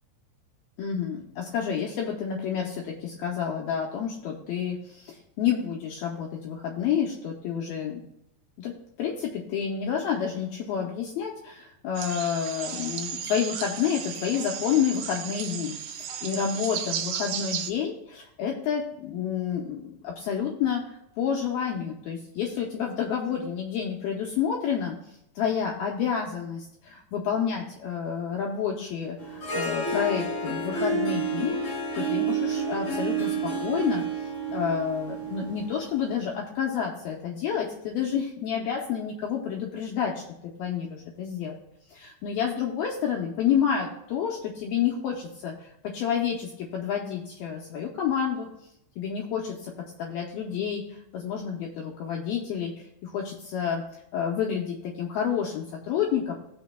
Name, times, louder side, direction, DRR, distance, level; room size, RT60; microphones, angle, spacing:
voice 1, 0.8-8.0 8.6-20.8 21.2-24.9 25.4-31.6 31.9-34.0 34.5-40.2 40.6-41.6 41.9-48.5 49.0-49.7 50.0-53.8 54.1-56.3, left 8 dB, 75° left, -1 dB, 2.4 m, -29 dB
sound 1, 12.0-17.7, right 8 dB, 85° right, 2.1 m, -34 dB
Harp, 29.2-36.3, right 3 dB, 45° left, 3.5 m, -30 dB
18.0 x 6.2 x 2.3 m, 0.80 s
omnidirectional pair, 5.1 m